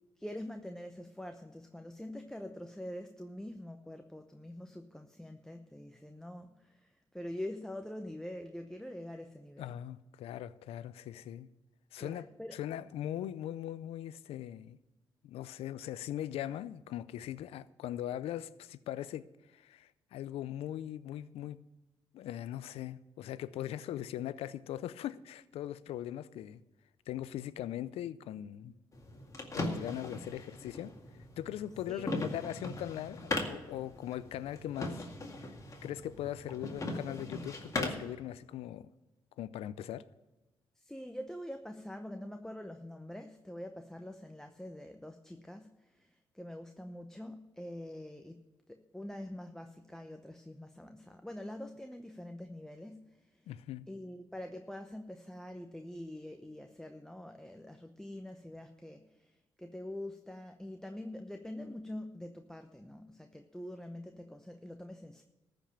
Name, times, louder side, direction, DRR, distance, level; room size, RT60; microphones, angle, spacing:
voice 1, 0.2-9.8 12.0-12.6 31.9-32.2 40.8-48.4 48.7-53.5 53.9-65.2, left 1 dB, 5° left, 0.8 m, -45 dB
voice 2, 9.6-11.5 11.9-12.3 12.5-14.8 15.2-19.3 19.5-21.6 22.1-26.6 27.1-28.7 29.5-31.0 31.4-35.1 35.8-38.9 39.4-40.1 53.5-53.9, left 12 dB, 85° left, 0.5 m, -40 dB
sound 1, 28.9-38.2, left 2 dB, 35° left, 2.0 m, -39 dB
14.0 x 5.2 x 8.6 m
supercardioid pair, 65°, 10 cm